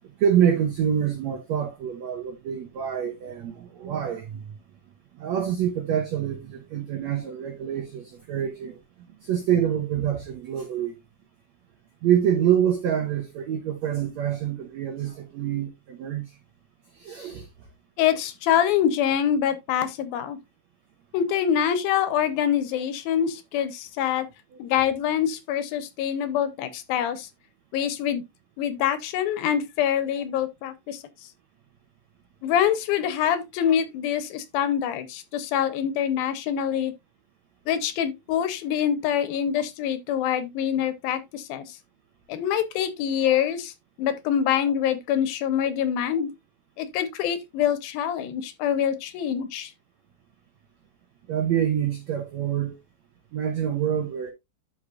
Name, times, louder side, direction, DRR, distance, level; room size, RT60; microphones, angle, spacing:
voice 1, 0.2-4.4 5.1-8.8 9.2-10.9 12.0-16.3 16.9-17.5 51.3-52.8 53.3-54.3, right 9 dB, 90° right, 1.5 m, -26 dB
voice 2, 18.0-20.4 21.1-24.3 24.6-27.3 27.7-28.2 28.6-31.0 32.4-36.9 37.7-41.8 42.3-43.7 44.0-46.3 46.8-49.7, left 9 dB, 75° left, 2.5 m, -25 dB
13.0 x 4.9 x 2.4 m
omnidirectional pair, 4.5 m